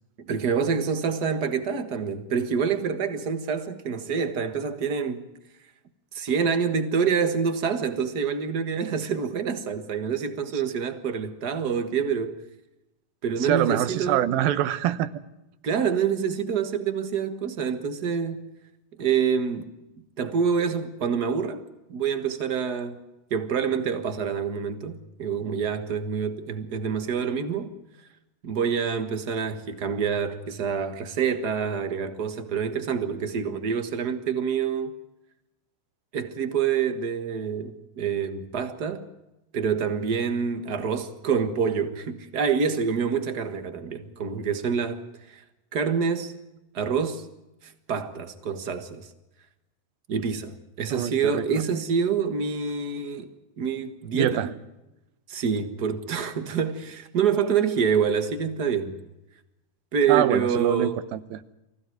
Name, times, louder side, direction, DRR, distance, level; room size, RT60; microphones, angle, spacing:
voice 1, 0.3-5.3 6.1-12.4 13.2-14.3 15.6-18.4 19.0-19.8 20.2-27.7 28.4-34.9 36.1-39.1 39.5-45.4 45.7-46.3 46.7-47.3 47.6-49.1 50.1-53.3 53.6-54.5 55.3-59.0 59.9-61.0, right 6 dB, 55° right, 1.0 m, -27 dB
voice 2, 13.4-15.1 50.9-51.6 54.1-54.5 60.1-61.4, right 11 dB, 85° right, 2.8 m, -25 dB
24.0 x 16.0 x 9.4 m
omnidirectional pair, 4.1 m